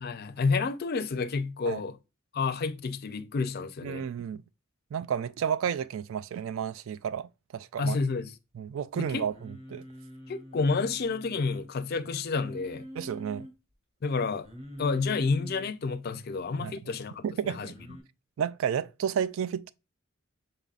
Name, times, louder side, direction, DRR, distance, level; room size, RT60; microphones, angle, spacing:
voice 1, 0.0-2.0 2.3-4.0 7.8-8.3 8.9-9.3 10.3-12.9 14.0-14.5 14.8-17.7, left 4 dB, 45° left, 0.4 m, -30 dB
voice 2, 3.8-4.4 4.9-8.0 8.5-9.8 13.0-13.5 16.6-16.8 17.2-17.7 18.4-19.7, right 8 dB, 70° right, 0.3 m, -32 dB
Singing, 9.3-11.7 12.3-13.5 14.4-15.7 17.7-18.0, equal, 30° right, 1.5 m, -45 dB
5.3 x 3.9 x 2.4 m
head